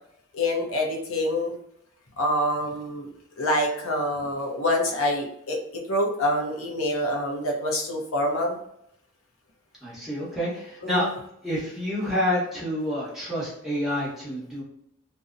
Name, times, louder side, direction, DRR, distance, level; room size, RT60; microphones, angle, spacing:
voice 1, 0.3-1.5 2.2-3.1 3.4-5.6 5.9-8.6 10.8-11.1, left 1 dB, 85° left, 0 dB, 0.7 m, -26 dB
voice 2, 9.8-11.1 11.4-14.6, left 1 dB, ahead, -8 dB, 1.0 m, -28 dB
2.6 x 2.1 x 2.4 m, 0.75 s
head